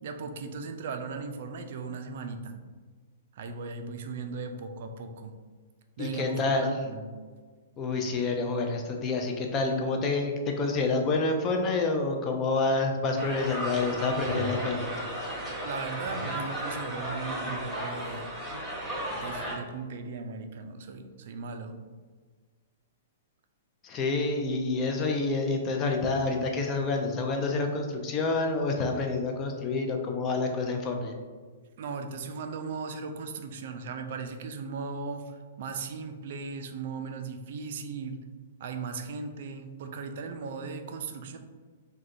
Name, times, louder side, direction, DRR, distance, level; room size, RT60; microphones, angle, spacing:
voice 1, 0.0-2.5 3.3-5.3 6.0-7.1 15.4-18.2 19.1-21.7 31.8-38.2 38.6-41.4, right 4 dB, 60° right, 6 dB, 0.4 m, -37 dB
voice 2, 6.0-6.7 7.8-15.0 23.8-31.1, left 3 dB, 30° left, 3 dB, 0.5 m, -28 dB
sound 1, 13.2-19.6, right 1 dB, 5° right, 1.1 m, -34 dB
3.4 x 2.2 x 2.6 m, 1.5 s
hypercardioid pair, 115°, 0 cm